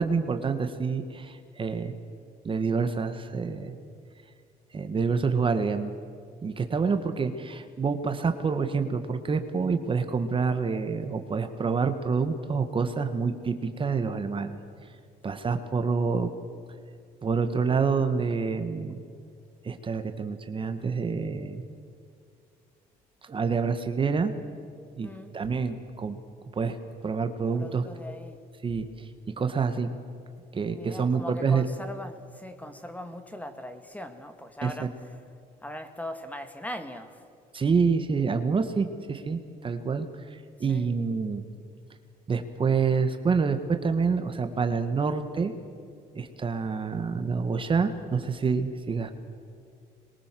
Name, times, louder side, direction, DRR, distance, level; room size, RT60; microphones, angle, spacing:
voice 1, 0.0-1.9 2.4-3.8 4.7-5.9 6.4-14.6 15.2-16.3 17.2-19.0 19.6-21.6 23.2-24.3 25.0-26.2 26.5-26.8 27.0-27.9 28.6-29.1 29.4-29.9 30.5-31.7 34.6-34.9 37.5-41.4 42.3-45.5 46.1-49.1, right 5 dB, 30° right, 8 dB, 1.6 m, -27 dB
voice 2, 25.0-25.3 27.5-28.4 30.7-34.9 35.6-37.2 40.7-40.9, left 1 dB, 10° left, 8 dB, 2.0 m, -40 dB
25.5 x 22.5 x 7.7 m, 2.3 s
cardioid pair, 110°, 17 cm